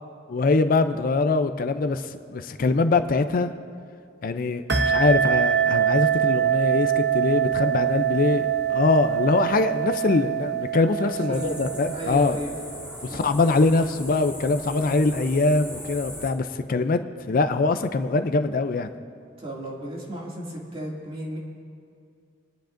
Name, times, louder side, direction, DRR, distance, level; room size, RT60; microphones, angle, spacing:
voice 1, 0.3-3.5 4.2-12.4 13.0-17.0 17.3-18.9, left 3 dB, 50° left, 10 dB, 0.4 m, -23 dB
sound 1, 4.7-12.8, right 9 dB, 60° right, 0.9 m, -24 dB
voice 2, 10.9-11.6 11.9-13.2 19.4-21.4, equal, 30° right, -4 dB, 2.3 m, -35 dB
sound 2, 11.3-16.3, left 1 dB, 5° right, 1.5 m, -39 dB
28.0 x 10.0 x 2.6 m, 2.3 s
head